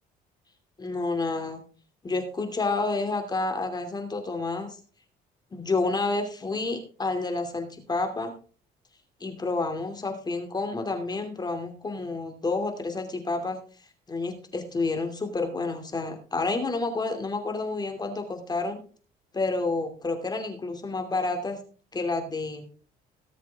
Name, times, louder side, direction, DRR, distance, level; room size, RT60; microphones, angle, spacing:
voice 1, 0.8-1.6 2.0-4.7 5.5-8.3 9.2-13.6 14.1-18.8 19.3-21.6 21.9-22.7, left 3 dB, 25° left, 4 dB, 2.7 m, -29 dB
18.5 x 7.4 x 3.6 m, 0.40 s
cardioid pair, 110°, 17 cm